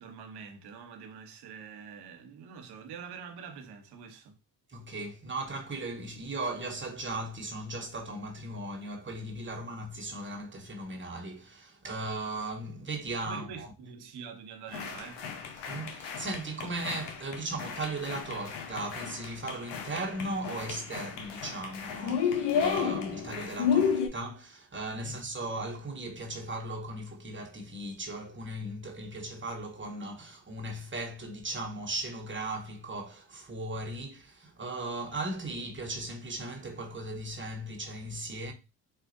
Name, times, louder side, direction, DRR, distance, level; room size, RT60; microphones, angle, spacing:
voice 1, 0.0-4.4 13.2-15.5 25.0-25.2, right 6 dB, 70° right, 1.0 m, -45 dB
voice 2, 4.7-13.7 15.7-38.5, right 2 dB, 30° right, 1.0 m, -37 dB
sound 1, 14.7-24.1, left 7 dB, 80° left, 0.8 m, -32 dB
4.0 x 2.4 x 2.5 m
supercardioid pair, 60°, 41 cm